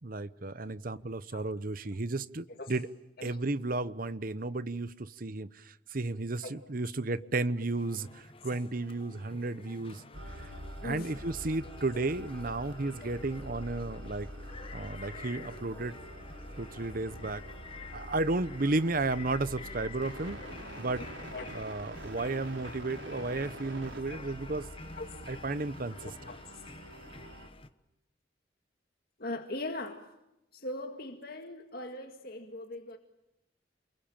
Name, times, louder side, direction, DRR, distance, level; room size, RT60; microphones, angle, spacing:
voice 1, 0.0-2.9 3.2-10.0 10.4-10.5 10.8-14.3 14.7-15.9 16.6-17.4 17.9-20.4 20.8-21.0 21.5-24.7 25.3-26.1, right 2 dB, 50° right, 15 dB, 0.9 m, -33 dB
sound 1, 7.8-27.7, left 3 dB, 30° left, 1.1 m, -50 dB
sound 2, 10.1-27.5, equal, 75° right, 4.9 m, -46 dB
voice 2, 10.8-11.1 11.9-12.1 15.7-15.8 20.2-20.5 21.0-21.1 21.3-21.6 24.1-24.6 25.0-25.1 26.0-26.6 29.2-30.1 30.5-33.0, left 2 dB, 55° left, 5 dB, 2.0 m, -41 dB
29.0 x 22.5 x 8.9 m, 0.92 s
head